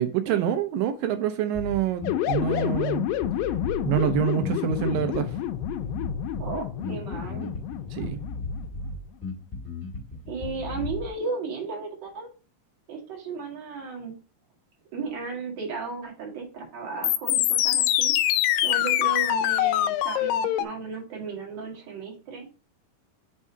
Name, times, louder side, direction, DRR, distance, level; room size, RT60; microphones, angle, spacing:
voice 1, 0.0-3.1 3.9-5.4 7.9-8.2, right 9 dB, 85° right, 2.3 m, -26 dB
Bass guitar, 1.5-11.1, left 3 dB, 10° left, 1.2 m, -36 dB
sound 1, 2.0-8.8 17.0-20.6, left 12 dB, 85° left, 2.3 m, -26 dB
voice 2, 6.4-7.5 10.3-12.3 12.9-14.2 14.9-18.1 18.6-22.5, right 4 dB, 35° right, 2.2 m, -35 dB
5.4 x 3.6 x 5.4 m
omnidirectional pair, 3.9 m